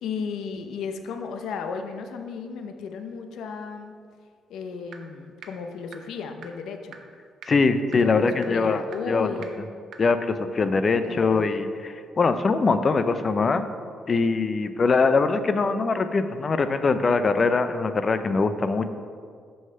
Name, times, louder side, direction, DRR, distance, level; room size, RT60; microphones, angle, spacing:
voice 1, 0.0-3.9 4.5-7.0 7.9-9.5 11.0-11.5, left 5 dB, 80° left, 6 dB, 0.7 m, -34 dB
sound 1, 4.9-5.0 5.4-5.5 5.9-6.0 6.4-6.5 6.9-7.0 7.4-7.5 7.9-8.0 8.4-8.5 8.9-9.0 9.4-9.5 9.9-10.0, right 7 dB, 70° right, 0.8 m, -41 dB
voice 2, 7.5-8.8 9.1-9.3 10.0-13.7 14.1-18.9, left 4 dB, 40° left, 10 dB, 0.5 m, -22 dB
6.2 x 5.6 x 5.6 m, 2.1 s
cardioid pair, 90°, 0 cm